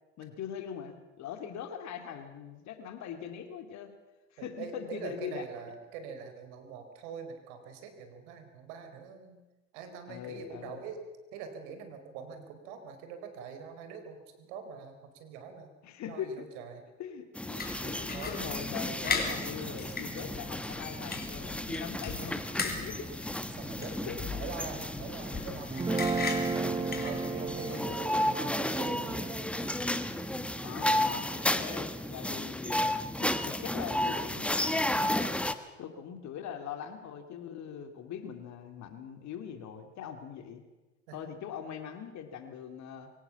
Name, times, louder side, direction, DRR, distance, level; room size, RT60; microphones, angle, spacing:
voice 1, 0.2-3.9 4.3-5.4 10.1-10.9 15.8-16.5 17.0-23.1 23.8-24.2 27.7-27.8 30.6-32.8 33.2-35.2 35.8-40.6 41.1-43.1, left 8 dB, 50° left, 7 dB, 2.8 m, -42 dB
voice 2, 4.4-9.4 9.7-11.0 11.3-15.8 16.1-16.8 18.1-18.4 23.5-25.7 26.0-26.3 27.0-29.4 41.1-41.2, right 6 dB, 70° right, 7 dB, 4.4 m, -44 dB
sound 1, 17.4-35.5, left 1 dB, 5° left, 1.4 m, -33 dB
sound 2, 17.6-27.6, left 4 dB, 25° left, 4.4 m, -39 dB
Guitar, 25.7-32.0, right 4 dB, 15° right, 0.9 m, -35 dB
23.5 x 17.5 x 7.2 m, 1.1 s
hypercardioid pair, 80°, 36 cm